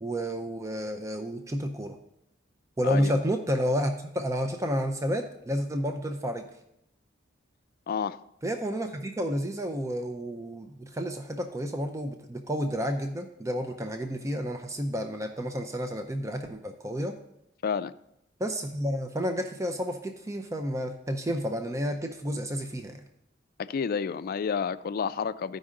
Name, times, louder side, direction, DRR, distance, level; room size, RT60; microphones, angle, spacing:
voice 1, 0.0-2.0 2.8-6.5 8.4-17.2 18.4-23.0, equal, 15° right, 0.5 m, -30 dB
voice 2, 2.8-3.1 7.9-8.2 17.6-17.9 23.6-25.6, left 6 dB, 50° left, 0.3 m, -30 dB
14.0 x 5.3 x 3.7 m
head